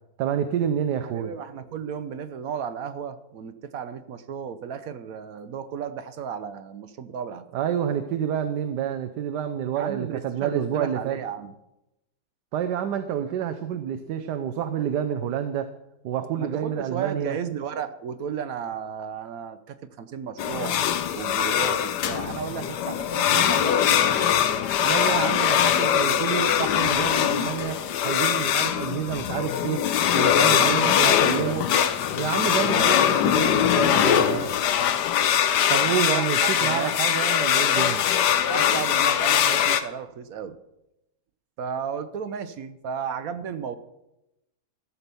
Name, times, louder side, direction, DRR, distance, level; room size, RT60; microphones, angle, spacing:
voice 1, 0.2-1.3 7.5-11.2 12.5-15.7 16.0-17.4 24.8-29.8 30.1-31.6 32.1-34.5 35.7-38.0, right 9 dB, 85° right, 7 dB, 1.3 m, -28 dB
voice 2, 1.1-7.5 9.8-11.5 16.4-20.8 21.1-24.5 30.5-31.7 35.9-36.9 38.5-40.6 41.6-43.8, right 7 dB, 65° right, 12 dB, 1.0 m, -34 dB
sound 1, 20.4-39.8, left 10 dB, 85° left, 1.3 m, -22 dB
14.0 x 5.8 x 6.8 m, 0.90 s
omnidirectional pair, 1.8 m